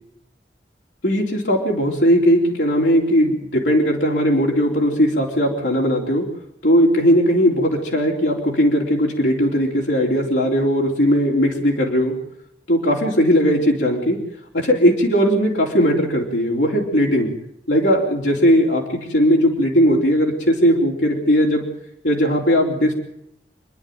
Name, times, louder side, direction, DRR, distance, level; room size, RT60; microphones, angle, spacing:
voice 1, 1.0-6.2 6.6-12.1 12.7-14.2 14.5-17.3 17.7-21.6 22.0-22.9, equal, 90° left, -2 dB, 3.8 m, -18 dB
28.0 x 10.5 x 9.4 m, 0.77 s
head